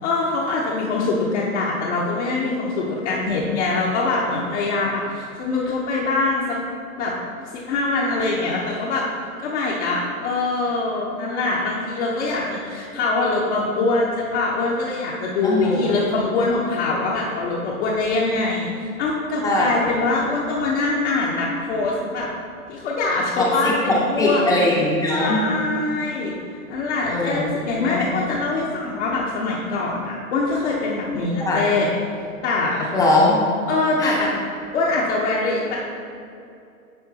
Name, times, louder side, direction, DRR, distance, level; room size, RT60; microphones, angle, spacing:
voice 1, 0.0-6.6 7.0-7.1 7.5-9.1 9.4-22.3 22.7-24.4 25.1-26.3 26.7-31.9 32.4-32.9 33.7-34.3 34.7-35.8, left 3 dB, 50° left, -4 dB, 0.9 m, -23 dB
voice 2, 15.4-16.0 19.4-19.7 23.4-25.4 27.1-27.4 27.8-28.1 31.4-31.6 32.9-33.4 34.0-34.2, left 2 dB, 10° left, -3 dB, 0.6 m, -20 dB
10.0 x 3.8 x 2.8 m, 2.5 s
hypercardioid pair, 130°, 44 cm